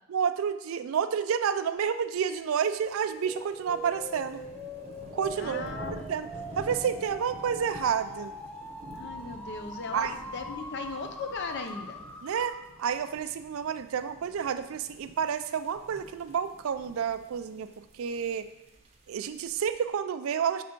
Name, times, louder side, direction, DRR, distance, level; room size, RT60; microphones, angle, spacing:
voice 1, 0.1-4.4 5.1-5.7 6.1-6.3 6.6-8.3 9.9-10.1 12.2-17.7 17.9-18.5 19.1-20.6, right 7 dB, 70° right, 11 dB, 0.3 m, -30 dB
sound 1, 2.4-19.9, right 1 dB, 30° right, 0.7 m, -49 dB
sound 2, 3.0-12.8, left 1 dB, 5° left, 0.3 m, -42 dB
voice 2, 5.4-6.0 8.9-12.0, left 4 dB, 55° left, 5 dB, 0.6 m, -38 dB
5.6 x 3.4 x 5.1 m, 0.93 s
head